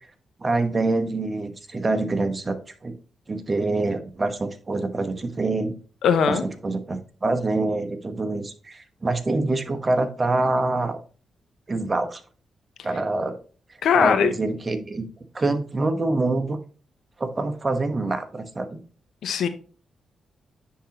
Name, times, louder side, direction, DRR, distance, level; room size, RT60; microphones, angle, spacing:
voice 1, 0.4-2.6 2.8-2.9 3.3-5.7 6.3-6.4 6.6-11.0 11.7-12.2 12.8-13.4 13.9-15.0 15.3-16.6 17.2-18.8, right 2 dB, 35° right, 1.1 m, -25 dB
voice 2, 6.0-6.4 13.8-14.3 19.2-19.5, left 7 dB, 80° left, 0.7 m, -20 dB
9.8 x 3.8 x 2.9 m
supercardioid pair, 60°, 0 cm